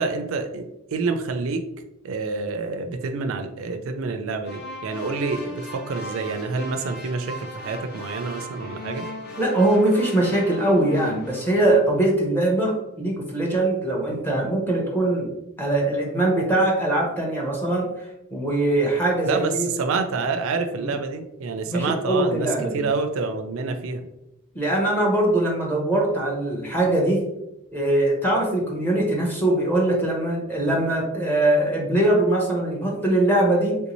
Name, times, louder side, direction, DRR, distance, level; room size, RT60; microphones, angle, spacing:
voice 1, 0.0-1.6 2.0-9.1 19.2-22.5 22.7-24.0, right 4 dB, 65° right, 6 dB, 0.4 m, -27 dB
sound 1, 4.5-12.0, equal, 45° left, 0.7 m, -37 dB
voice 2, 9.4-15.3 15.6-17.9 18.3-19.7 20.7-20.9 21.7-22.9 24.5-27.2 27.7-33.8, right 1 dB, 10° left, -2 dB, 0.7 m, -22 dB
3.5 x 2.6 x 2.9 m, 0.89 s
head